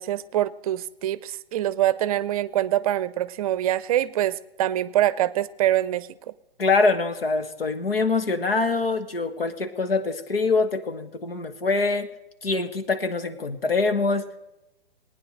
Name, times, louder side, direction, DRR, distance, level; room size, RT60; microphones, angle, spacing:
voice 1, 0.0-6.1, right 13 dB, 40° right, 18 dB, 0.6 m, -24 dB
voice 2, 6.6-12.1 12.4-14.3, left 3 dB, 80° left, 10 dB, 1.6 m, -24 dB
19.5 x 9.5 x 6.5 m, 0.99 s
figure-of-eight pair, 125°, 29 cm